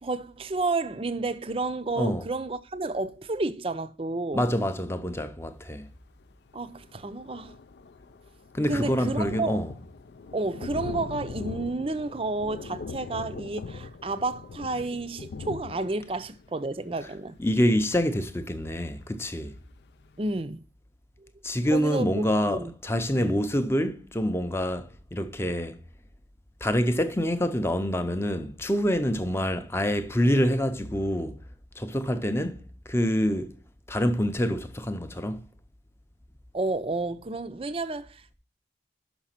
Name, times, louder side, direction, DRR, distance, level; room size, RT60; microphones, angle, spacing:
voice 1, 0.0-4.4 6.5-7.5 8.7-9.6 10.3-17.4 20.2-20.6 21.2-21.3 21.7-22.7 23.2-23.4 36.5-38.3, right 3 dB, 30° right, 0.5 m, -31 dB
voice 2, 4.3-5.9 8.5-9.7 17.4-19.5 21.4-25.8 26.6-31.4 31.8-33.6 33.9-35.4, equal, 15° left, 0.6 m, -26 dB
Thunder, 6.2-6.3 6.5-19.1 19.6-19.7 20.0-20.1, left 4 dB, 70° left, 0.4 m, -41 dB
6.1 x 5.8 x 5.7 m
head